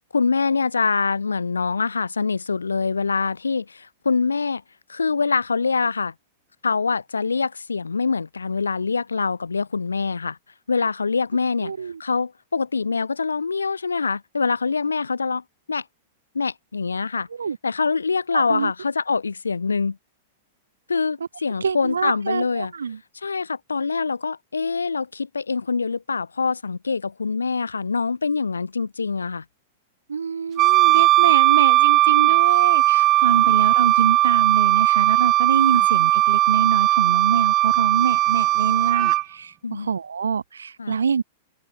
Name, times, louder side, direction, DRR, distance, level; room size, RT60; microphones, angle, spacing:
voice 1, 0.1-4.6 4.9-6.1 6.6-10.4 10.7-11.7 12.0-15.4 15.7-15.8 16.3-17.3 17.6-20.0 20.9-22.7 23.2-29.4 33.3-33.7 35.7-35.9 39.6-39.9 40.8-41.0, left 4 dB, 80° left, 5.8 m, -24 dB
voice 2, 11.6-12.0 17.4-17.6 18.3-18.7 21.6-23.0 30.1-41.2, right 6 dB, 75° right, 4.2 m, -25 dB
Wind instrument woodwind instrument, 30.6-39.2, right 16 dB, 35° right, 3.4 m, -18 dB
open air
figure-of-eight pair, 100°, 0 cm